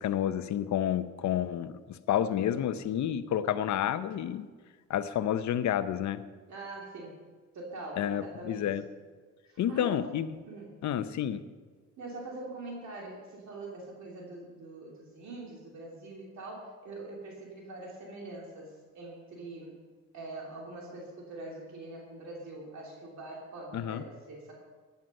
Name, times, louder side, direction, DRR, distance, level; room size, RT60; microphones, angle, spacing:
voice 1, 0.0-4.5 4.9-6.2 8.0-8.8 9.6-10.3 10.8-11.4 23.7-24.0, left 10 dB, 70° left, 12 dB, 0.8 m, -30 dB
voice 2, 6.5-7.2 7.5-8.7 9.5-10.0 10.5-10.8 12.0-19.8 20.1-24.6, right 2 dB, 65° right, -2 dB, 2.8 m, -43 dB
14.0 x 9.5 x 5.4 m, 1.4 s
cardioid pair, 90°, 30 cm